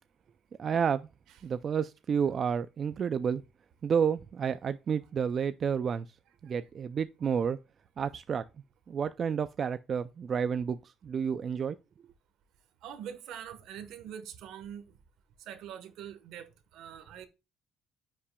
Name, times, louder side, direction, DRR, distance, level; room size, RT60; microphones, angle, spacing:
voice 1, 0.6-1.1 1.4-3.4 3.8-6.1 6.4-7.6 8.0-8.4 8.9-10.8 11.0-11.8, right 7 dB, 40° right, 0.4 m, -30 dB
voice 2, 12.8-14.9 15.5-17.2, right 9 dB, 75° right, 1.2 m, -44 dB
9.9 x 5.6 x 2.3 m
cardioid pair, 130°, 0 cm